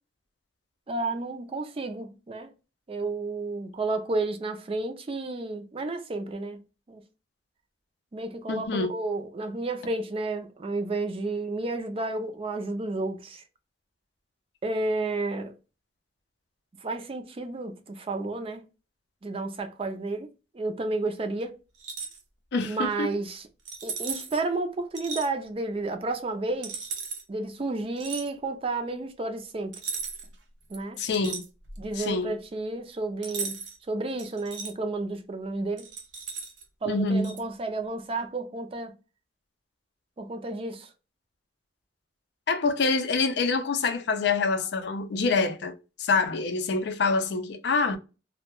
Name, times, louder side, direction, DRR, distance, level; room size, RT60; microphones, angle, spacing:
voice 1, 0.9-2.5 2.9-6.6 6.9-7.0 8.1-13.4 14.6-15.5 16.8-18.6 19.2-20.3 20.5-21.5 22.6-23.4 23.8-26.8 27.3-29.8 30.7-31.0 31.8-33.6 33.9-35.9 36.8-38.9 40.2-40.9, right 2 dB, 30° right, 0.4 m, -31 dB
voice 2, 8.5-8.9 22.5-23.1 31.0-31.4 32.0-32.3 36.9-37.4 42.5-45.7 46.0-48.0, left 4 dB, 65° left, 0.4 m, -26 dB
sound 1, 21.7-22.2 23.6-24.4 24.9-25.3 26.6-27.2 28.0-28.3 29.7-30.3 30.7-31.9 33.2-33.8 34.2-34.7 35.8-36.6 37.2-37.4, right 5 dB, 90° right, 0.7 m, -36 dB
2.2 x 2.1 x 2.9 m
head